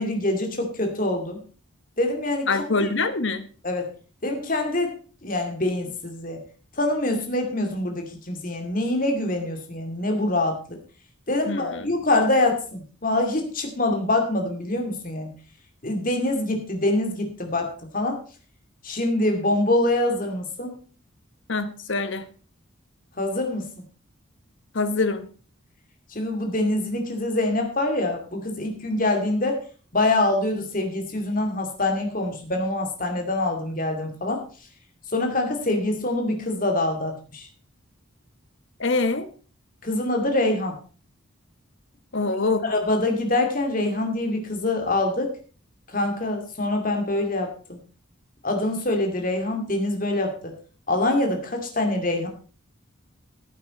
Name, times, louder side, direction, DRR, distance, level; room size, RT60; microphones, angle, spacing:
voice 1, 0.0-1.4 2.0-2.9 3.6-3.9 4.2-4.9 5.2-6.4 6.8-10.8 11.3-15.3 15.8-18.2 18.8-20.8 23.2-23.7 26.1-29.6 29.9-34.4 35.1-37.5 39.8-40.8 42.6-45.3 45.9-47.8 48.4-50.5 50.9-52.3, left 2 dB, 40° left, 4 dB, 2.4 m, -25 dB
voice 2, 2.5-3.4 11.5-11.9 21.5-22.3 24.7-25.3 38.8-39.3 42.1-42.6, left 3 dB, 60° left, 11 dB, 1.2 m, -24 dB
15.0 x 8.3 x 4.3 m, 0.39 s
head